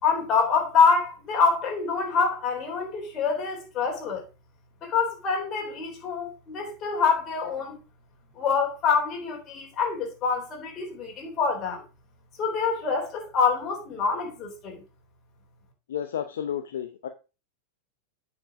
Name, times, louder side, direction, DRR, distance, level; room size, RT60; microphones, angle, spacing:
voice 1, 0.0-4.3 4.8-7.8 8.4-11.8 12.4-14.8, left 5 dB, 30° left, 3.6 m, -26 dB
voice 2, 15.9-17.1, left 9 dB, 60° left, 0.7 m, -31 dB
8.9 x 5.3 x 4.9 m
figure-of-eight pair, 90°, 0 cm